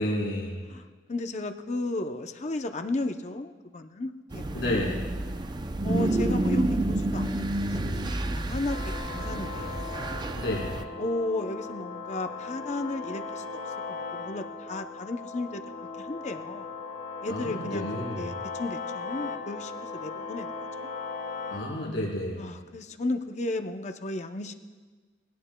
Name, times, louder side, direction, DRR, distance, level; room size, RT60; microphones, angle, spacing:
voice 1, 0.0-0.6 4.5-5.0 10.3-10.8 17.3-18.3 21.5-22.5, left 1 dB, 65° left, -5 dB, 4.6 m, -30 dB
voice 2, 0.7-4.8 5.8-8.8 9.1-9.9 11.0-13.4 13.9-15.6 16.0-16.7 17.2-17.9 18.2-20.9 22.4-24.5, left 2 dB, 35° left, 6 dB, 0.6 m, -34 dB
sound 1, 4.3-10.8, right 1 dB, 20° right, 0.4 m, -29 dB
sound 2, 8.7-21.6, left 4 dB, 90° left, 2.0 m, -38 dB
21.5 x 17.0 x 2.2 m, 1.4 s
head